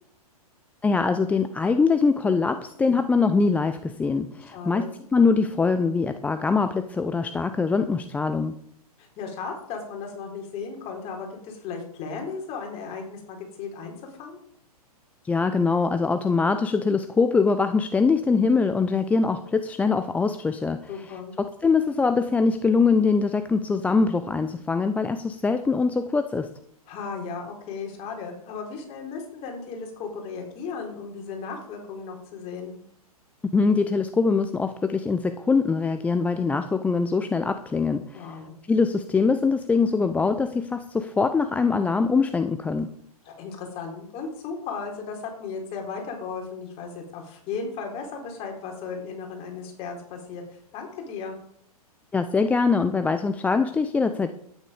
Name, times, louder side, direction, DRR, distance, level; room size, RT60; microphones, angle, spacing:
voice 1, 0.8-8.5 15.2-20.8 21.4-26.5 33.5-38.4 38.7-42.9 52.1-54.3, left 4 dB, 5° left, 9 dB, 0.5 m, -23 dB
voice 2, 4.5-4.9 9.0-14.4 20.9-21.4 26.9-32.7 38.1-38.6 43.2-50.4 50.7-51.4, left 5 dB, 30° left, 2 dB, 4.1 m, -35 dB
12.5 x 10.0 x 5.1 m, 0.69 s
figure-of-eight pair, 110°, 20 cm